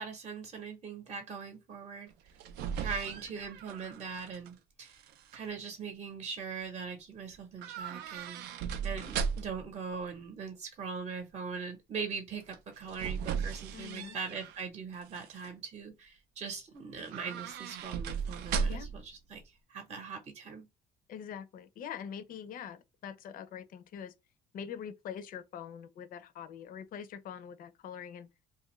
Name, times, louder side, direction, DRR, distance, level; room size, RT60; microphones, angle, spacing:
voice 1, 0.0-2.1 2.8-5.0 5.3-8.4 8.8-19.4 19.7-20.7, right 5 dB, 40° right, 0.7 m, -41 dB
sound 1, 2.1-4.5 4.8-5.4 7.6-9.7 12.5-14.6 15.0-15.5 17.0-19.1 19.3-19.4, right 6 dB, 85° right, 0.4 m, -37 dB
voice 2, 13.7-14.2 18.7-19.0 21.1-24.1 24.5-28.3, left 8 dB, 55° left, 0.5 m, -44 dB
2.5 x 2.4 x 2.9 m
cardioid pair, 110°, 17 cm